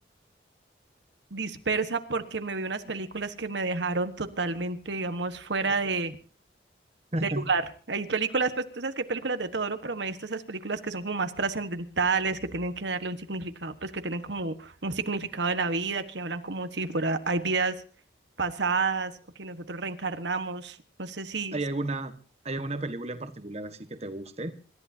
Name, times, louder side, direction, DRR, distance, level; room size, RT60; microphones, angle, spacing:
voice 1, 1.3-6.2 7.2-7.6 7.9-17.8 18.4-19.1 19.4-21.6, right 4 dB, 70° right, 1.4 m, -30 dB
voice 2, 7.1-7.4 21.5-22.1 22.4-24.5, right 2 dB, 35° right, 1.3 m, -32 dB
27.0 x 14.0 x 2.8 m
head